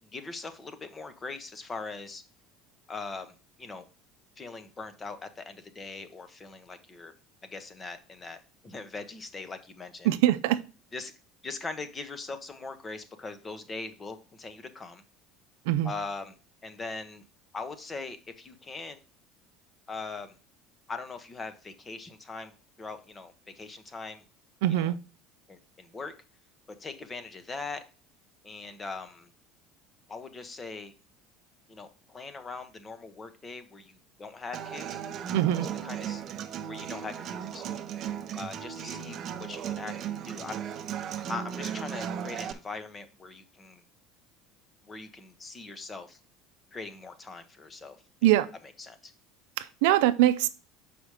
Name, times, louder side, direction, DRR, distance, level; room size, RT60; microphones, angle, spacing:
voice 1, 0.0-2.2 2.9-3.9 4.4-7.1 7.4-10.1 10.9-11.1 11.4-15.0 15.8-16.3 16.6-17.2 17.5-19.0 19.9-20.3 20.9-22.5 22.8-24.2 24.8-24.9 25.5-26.1 26.8-27.8 28.4-29.3 30.1-30.9 31.7-35.0 35.8-36.2 36.6-37.8 38.4-40.6 41.3-43.8 44.8-46.2 46.7-48.4 48.8-49.1, left 3 dB, 20° left, 1.0 m, -41 dB
voice 2, 10.0-10.6 15.7-15.9 24.6-25.0 35.3-35.7 48.2-48.5 49.6-50.5, right 14 dB, 85° right, 0.5 m, -23 dB
Human voice / Acoustic guitar, 34.5-42.5, right 9 dB, 45° right, 0.7 m, -36 dB
6.4 x 5.0 x 4.8 m
supercardioid pair, 115°, 0 cm